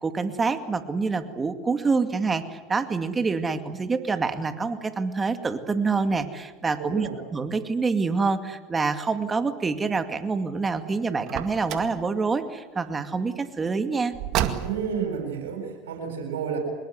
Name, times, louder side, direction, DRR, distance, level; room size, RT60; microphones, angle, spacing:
voice 1, 0.0-14.1, right 4 dB, 20° right, 8 dB, 2.3 m, -26 dB
voice 2, 6.8-7.2 14.6-16.6, right 7 dB, 80° right, 1 dB, 7.9 m, -31 dB
Car, 11.2-12.0 14.1-15.0, right 11 dB, 55° right, 2.2 m, -29 dB
25.5 x 21.5 x 8.1 m, 1.2 s
hypercardioid pair, 90°, 0 cm